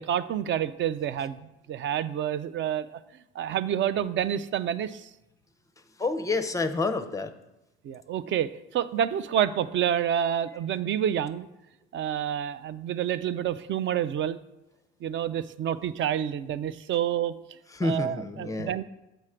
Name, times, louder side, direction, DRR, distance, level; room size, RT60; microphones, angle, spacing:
voice 1, 0.0-3.0 3.4-5.1 7.8-11.5 11.9-14.4 15.0-17.3 17.8-18.8, right 10 dB, 40° right, 14 dB, 0.4 m, -28 dB
voice 2, 6.0-7.3 17.7-18.7, left 3 dB, 10° left, 9 dB, 0.5 m, -28 dB
7.7 x 3.1 x 4.9 m, 0.95 s
hypercardioid pair, 70°, 31 cm